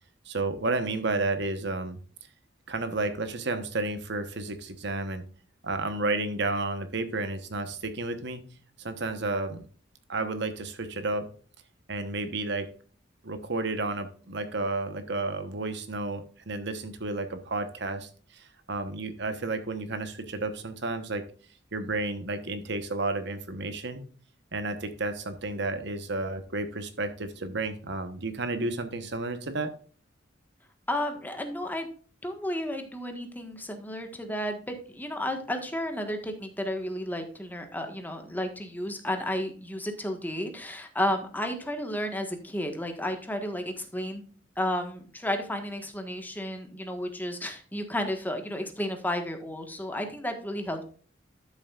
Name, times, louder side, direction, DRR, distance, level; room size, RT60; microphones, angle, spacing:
voice 1, 0.2-2.0 2.7-5.2 5.6-8.4 8.8-9.6 10.1-11.3 11.9-12.7 13.2-21.2 21.7-24.0 24.5-29.7, right 2 dB, 65° right, 9 dB, 1.1 m, -31 dB
voice 2, 30.9-31.9 32.2-44.2 44.6-50.8, left 1 dB, 10° left, 5 dB, 1.4 m, -32 dB
12.5 x 7.2 x 2.4 m, 0.41 s
head